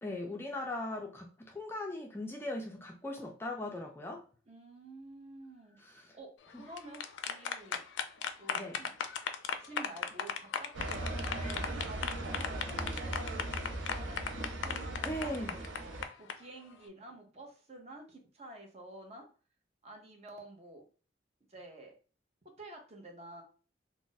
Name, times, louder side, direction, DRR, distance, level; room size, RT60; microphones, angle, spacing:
voice 1, 0.0-4.2 5.8-6.1 8.5-8.8 15.0-15.5, left 1 dB, 15° left, 1 dB, 0.3 m, -39 dB
voice 2, 4.5-7.9 8.3-8.9 9.6-19.3 19.8-20.8 21.5-22.0 22.4-23.4, right 1 dB, 35° right, 2 dB, 0.7 m, -50 dB
sound 1, 6.6-16.3, left 7 dB, 90° left, 0.4 m, -36 dB
sound 2, 10.7-16.0, right 1 dB, 90° right, 0.5 m, -39 dB
2.5 x 2.0 x 3.8 m, 0.38 s
head